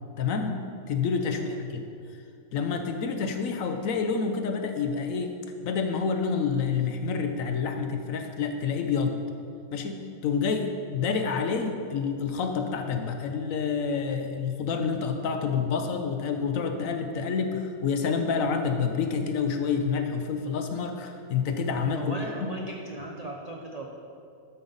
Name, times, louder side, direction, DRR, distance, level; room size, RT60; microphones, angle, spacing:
voice 1, 0.2-0.6 0.9-1.8 2.5-5.4 5.6-9.2 9.7-22.5, left 5 dB, 65° left, 5 dB, 1.0 m, -28 dB
voice 2, 1.2-1.6 21.9-23.9, right 1 dB, 60° right, 0 dB, 0.4 m, -37 dB
12.0 x 5.5 x 3.9 m, 2.5 s
omnidirectional pair, 1.6 m